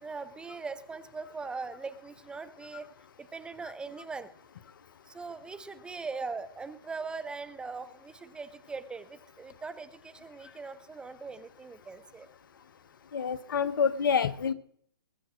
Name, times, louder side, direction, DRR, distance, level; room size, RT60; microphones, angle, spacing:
voice 1, 0.0-2.9 3.2-4.3 5.1-12.3, right 4 dB, 5° right, 14 dB, 0.5 m, -40 dB
voice 2, 13.1-14.5, left 6 dB, 65° left, 14 dB, 1.1 m, -27 dB
20.5 x 7.5 x 6.3 m, 0.64 s
hypercardioid pair, 140°, 12 cm